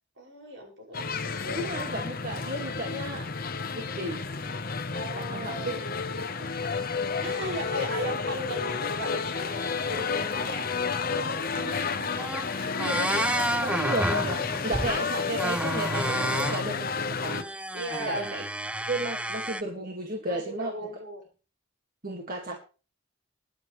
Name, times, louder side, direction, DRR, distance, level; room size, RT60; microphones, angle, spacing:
voice 1, 0.2-1.6 4.9-5.8 7.1-10.7 11.0-11.5 16.2-16.5 17.7-18.3 20.3-21.2, right 1 dB, 70° right, 0 dB, 6.4 m, -37 dB
sound 1, 0.9-17.4, left 5 dB, 50° left, 1.1 m, -31 dB
voice 2, 1.5-3.3 3.7-4.2 5.2-5.8 6.4-6.5 11.6-12.2 12.8-13.1 13.6-16.9 17.2-17.5 18.1-18.4 18.9-20.7 22.0-22.6, right 1 dB, 45° right, 1 dB, 2.1 m, -34 dB
sound 2, 11.8-11.9 12.2-12.5 12.8-15.0 15.4-16.6 17.2-19.6, right 1 dB, 5° right, 0.5 m, -30 dB
21.5 x 7.8 x 3.3 m, 0.34 s
head